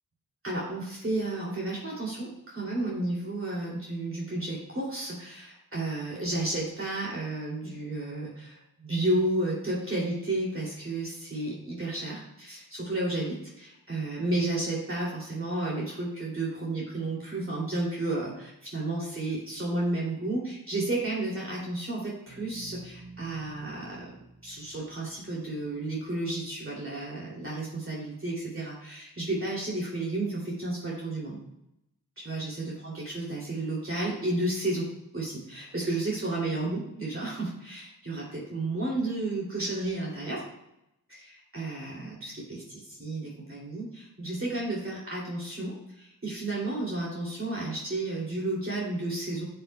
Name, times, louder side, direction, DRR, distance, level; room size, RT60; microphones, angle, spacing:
voice 1, 0.4-24.2 24.4-31.4 32.2-34.8 35.1-40.4 41.1-49.4, right 2 dB, 35° right, -5 dB, 2.7 m, -32 dB
sound 1, 22.3-26.5, right 3 dB, 60° right, 1.5 m, -51 dB
13.0 x 7.6 x 2.2 m, 0.86 s
wide cardioid pair, 75°, 35 cm